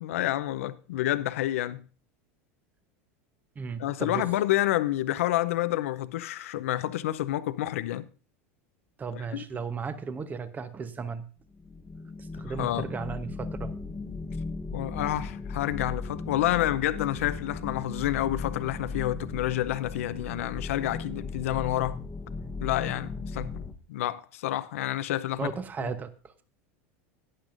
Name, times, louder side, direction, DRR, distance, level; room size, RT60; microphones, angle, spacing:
voice 1, 0.0-1.8 3.8-8.1 9.3-9.4 12.6-12.9 14.7-22.0 22.6-25.5, left 14 dB, 80° left, 0.6 m, -29 dB
voice 2, 3.6-4.3 9.0-11.3 12.2-13.7 25.4-26.4, right 5 dB, 25° right, 0.9 m, -35 dB
sound 1, 11.5-23.7, left 3 dB, 15° left, 1.0 m, -37 dB
15.5 x 10.5 x 2.6 m
supercardioid pair, 105°, 7 cm